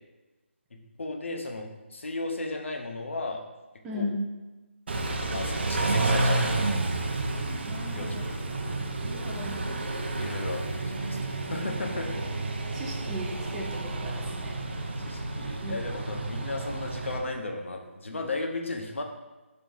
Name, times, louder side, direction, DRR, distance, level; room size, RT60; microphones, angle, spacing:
voice 1, 0.7-3.4 3.9-4.0 5.3-6.9 7.9-8.8 10.2-11.2 11.5-12.1 15.0-19.0, left 2 dB, 70° left, 2 dB, 0.7 m, -35 dB
voice 2, 3.8-4.2 7.7-8.2 9.0-9.7 12.7-14.5 15.6-15.8, left 1 dB, 10° right, -2 dB, 0.4 m, -36 dB
Car / Idling / Accelerating revving vroom, 4.9-17.2, right 2 dB, 55° right, 0.6 m, -30 dB
5.9 x 3.3 x 2.6 m, 1.1 s
figure-of-eight pair, 155°, 7 cm